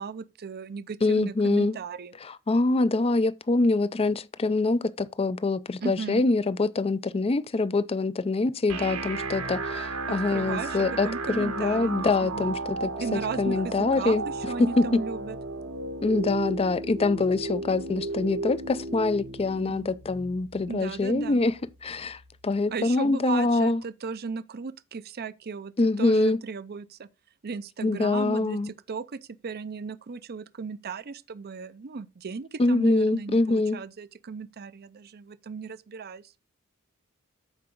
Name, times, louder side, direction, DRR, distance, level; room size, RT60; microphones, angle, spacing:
voice 1, 0.0-2.1 5.8-6.3 10.1-12.6 13.0-15.4 20.7-21.4 22.7-25.7 26.0-27.1 27.4-36.3, right 5 dB, 45° right, 0.5 m, -36 dB
voice 2, 1.0-1.8 2.3-14.2 14.6-15.0 16.0-21.5 21.8-23.8 25.8-26.4 27.8-28.7 32.6-33.8, left 3 dB, 25° left, 0.5 m, -25 dB
sound 1, 8.7-22.7, right 3 dB, 85° right, 1.6 m, -35 dB
13.5 x 4.8 x 3.8 m
head